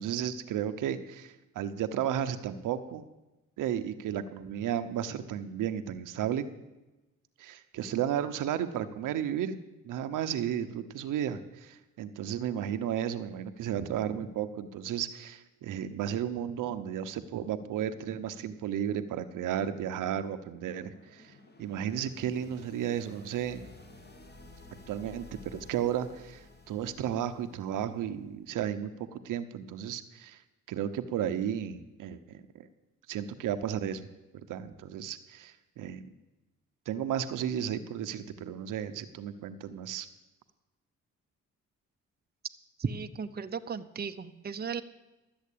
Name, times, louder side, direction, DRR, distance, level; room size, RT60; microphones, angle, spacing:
voice 1, 0.0-3.1 3.6-6.5 7.4-9.6 9.8-21.3 21.6-23.6 24.9-25.3 25.5-30.4 30.7-32.7 33.1-34.1 34.5-36.0 36.9-40.1, right 9 dB, 75° right, 10 dB, 0.9 m, -33 dB
sound 1, 20.0-28.4, left 2 dB, 30° left, 2.1 m, -53 dB
voice 2, 42.8-44.8, right 6 dB, 30° right, 8 dB, 0.8 m, -35 dB
12.5 x 7.9 x 8.5 m, 1.1 s
supercardioid pair, 65°, 32 cm